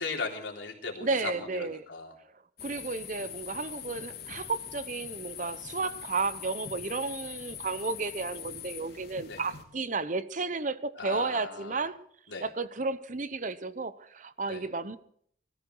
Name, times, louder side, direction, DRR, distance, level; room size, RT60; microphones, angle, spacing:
voice 1, 0.0-2.1 9.3-9.4 11.0-11.8 12.3-12.5 14.5-14.6, left 4 dB, 80° left, 3.7 m, -37 dB
voice 2, 1.0-1.8 2.6-12.0 12.4-15.0, right 3 dB, 45° right, 0.8 m, -33 dB
sound 1, 2.6-9.6, left 9 dB, 55° left, 3.3 m, -43 dB
21.0 x 14.0 x 4.6 m
head